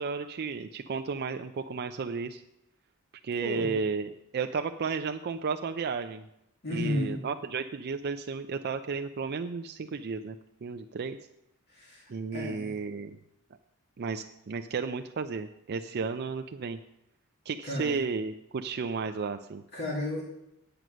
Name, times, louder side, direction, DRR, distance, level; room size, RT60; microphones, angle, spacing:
voice 1, 0.0-2.4 3.2-6.2 6.7-10.4 10.6-11.2 12.1-13.2 14.0-16.8 17.5-19.6, right 5 dB, 50° right, 7 dB, 0.4 m, -33 dB
voice 2, 3.4-3.7 6.6-7.2 11.7-12.7 17.6-18.0 19.7-20.2, left 1 dB, 50° left, -3 dB, 2.2 m, -33 dB
9.2 x 7.9 x 6.2 m, 0.83 s
head